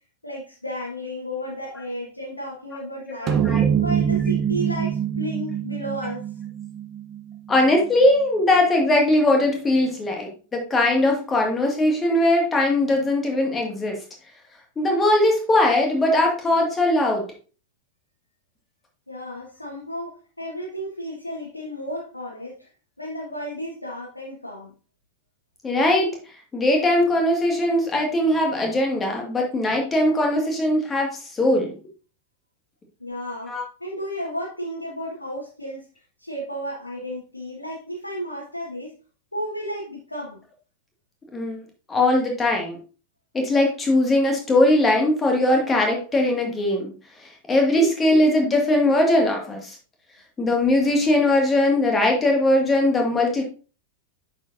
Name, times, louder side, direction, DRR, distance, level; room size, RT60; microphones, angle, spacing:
voice 1, 0.2-3.4 3.8-6.2 19.1-22.7 23.0-24.7 33.0-33.5 33.8-35.9 36.2-38.9 39.3-40.4, equal, 85° left, -5 dB, 1.6 m, -33 dB
voice 2, 3.2-3.7 7.5-14.0 14.8-17.3 25.6-26.1 26.5-31.8 33.5-33.6 41.3-41.6 41.9-42.8 43.3-46.9 47.2-49.8 50.4-53.4, left 1 dB, 15° left, 1 dB, 2.0 m, -20 dB
sound 1, 3.3-7.9, right 9 dB, 30° right, 0.6 m, -24 dB
10.5 x 4.8 x 2.7 m, 0.36 s
figure-of-eight pair, 90°, 0 cm